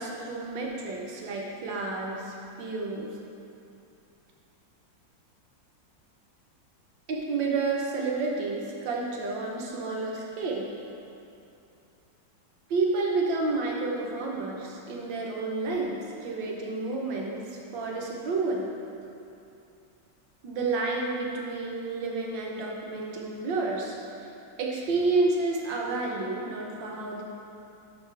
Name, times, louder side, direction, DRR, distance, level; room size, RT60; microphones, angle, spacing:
voice 1, 0.0-3.1 7.1-10.6 12.7-18.7 20.4-24.0 24.6-27.2, right 3 dB, 70° right, -1 dB, 1.6 m, -30 dB
11.0 x 5.1 x 3.3 m, 2.8 s
omnidirectional pair, 2.1 m